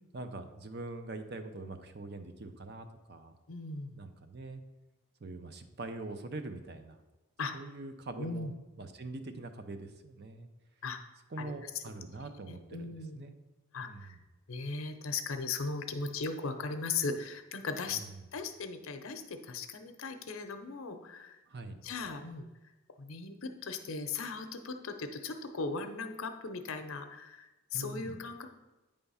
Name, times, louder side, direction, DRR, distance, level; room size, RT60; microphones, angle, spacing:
voice 1, 0.1-3.3 3.9-4.6 5.2-7.0 7.5-8.5 8.8-10.5 11.3-13.3 13.8-14.2 17.9-18.0 21.5-21.8 27.7-28.2, right 2 dB, 50° right, 7 dB, 0.6 m, -43 dB
voice 2, 3.5-4.0 7.4-7.5 8.2-8.5 10.8-11.0 11.4-11.8 12.5-13.3 13.7-14.2 14.5-18.0 18.3-21.4 21.8-22.5 23.0-28.5, left 4 dB, 80° left, 7 dB, 0.7 m, -38 dB
8.8 x 3.5 x 5.5 m, 1.1 s
head